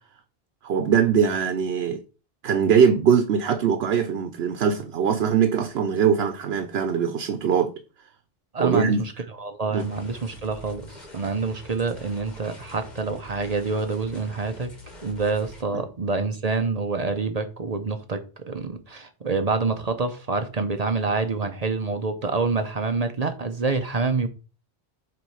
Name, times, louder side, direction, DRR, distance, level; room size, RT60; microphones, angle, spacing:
voice 1, 0.6-2.0 2.4-7.7 8.6-9.0 9.7-9.9 15.7-15.9, right 7 dB, 85° right, 0.9 m, -22 dB
voice 2, 8.5-9.1 9.4-14.7 15.0-24.3, right 4 dB, 45° right, 0.7 m, -27 dB
sound 1, 9.8-15.6, left 1 dB, 45° left, 1.6 m, -45 dB
7.5 x 3.1 x 5.5 m
omnidirectional pair, 1.0 m